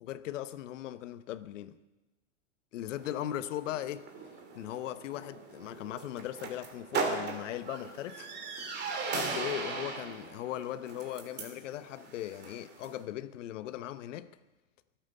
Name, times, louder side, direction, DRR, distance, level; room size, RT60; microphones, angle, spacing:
voice 1, 0.0-1.8 2.7-4.0 4.5-8.3 9.1-14.3, left 13 dB, 75° left, 1.0 m, -38 dB
sound 1, 2.9-13.0, right 4 dB, 25° right, 2.8 m, -39 dB
23.5 x 8.8 x 5.5 m
supercardioid pair, 130°, 37 cm